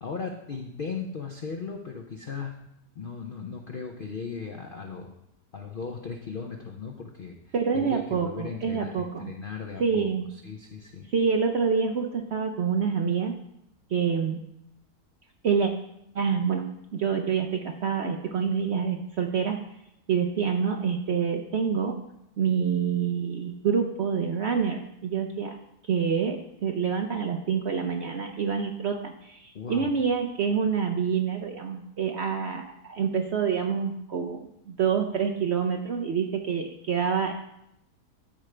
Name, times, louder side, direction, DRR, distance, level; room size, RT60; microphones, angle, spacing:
voice 1, 0.0-2.6 2.9-5.1 5.5-10.1 10.4-11.1 29.5-29.9, left 5 dB, 65° left, 3 dB, 0.5 m, -37 dB
voice 2, 7.5-9.3 9.8-10.2 11.1-13.3 13.9-14.4 15.4-15.7 16.1-19.6 20.1-22.0 22.4-25.6 25.8-37.3, right 6 dB, 65° right, 3 dB, 0.6 m, -27 dB
12.5 x 5.0 x 3.3 m, 0.80 s
omnidirectional pair, 1.8 m